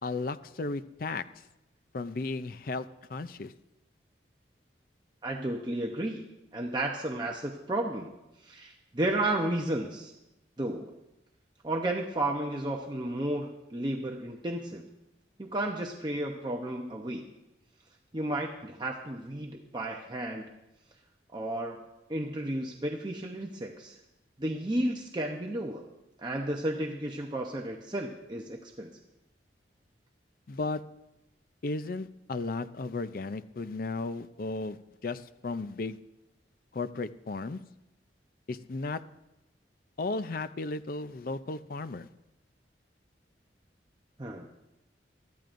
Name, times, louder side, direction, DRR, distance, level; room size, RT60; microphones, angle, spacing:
voice 1, 0.0-1.2 1.9-3.5 30.5-30.8 31.6-36.0 36.7-37.6 38.5-39.0 40.0-42.1, left 3 dB, 50° left, 13 dB, 0.5 m, -35 dB
voice 2, 5.2-6.2 6.5-8.1 8.4-10.1 10.6-11.0 11.6-14.8 15.4-17.2 18.1-20.5 21.3-21.8 22.1-24.0 24.4-25.9 26.2-29.0 44.2-44.5, right 1 dB, 25° right, 1 dB, 0.8 m, -33 dB
23.0 x 13.5 x 2.6 m, 0.93 s
head